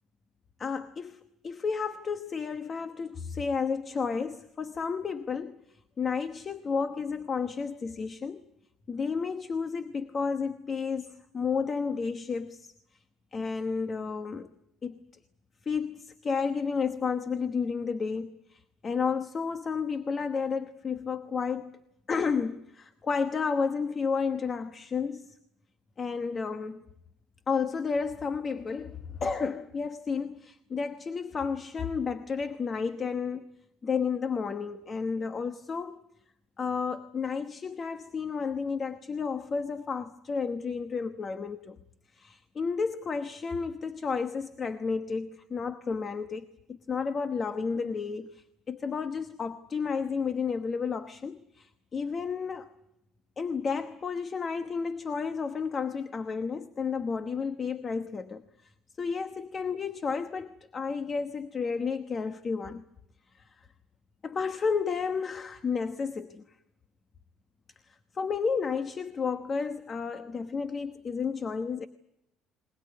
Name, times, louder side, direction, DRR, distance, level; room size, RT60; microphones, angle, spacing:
voice 1, 0.6-5.6 6.0-8.4 8.9-12.7 13.3-14.5 14.8-15.0 15.6-21.8 22.1-25.4 26.0-26.8 27.5-33.5 33.8-36.0 36.6-41.8 42.1-52.7 53.4-58.4 59.0-62.8 64.2-66.4 68.1-71.9, left 5 dB, 30° left, 10 dB, 1.1 m, -32 dB
21.5 x 21.0 x 9.5 m, 0.81 s
cardioid pair, 130°, 0 cm